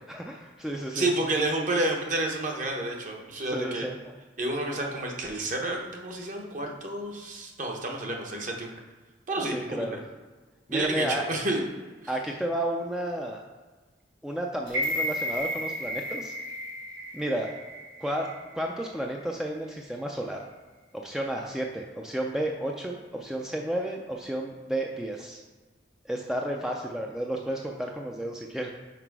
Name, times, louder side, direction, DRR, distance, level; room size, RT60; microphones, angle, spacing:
voice 1, 0.1-1.1 3.5-4.0 9.4-10.0 10.7-11.2 12.1-13.4 14.2-16.3 17.1-17.5 18.0-18.3 18.5-20.4 20.9-25.4 26.1-28.7, right 1 dB, 5° right, 0 dB, 0.4 m, -32 dB
voice 2, 0.9-3.9 4.4-8.8 9.3-9.9 10.7-11.7, right 2 dB, 45° right, 1 dB, 0.9 m, -30 dB
sound 1, 14.7-18.8 19.2-19.3, equal, 70° right, 1.5 m, -33 dB
5.9 x 4.4 x 4.6 m, 1.3 s
head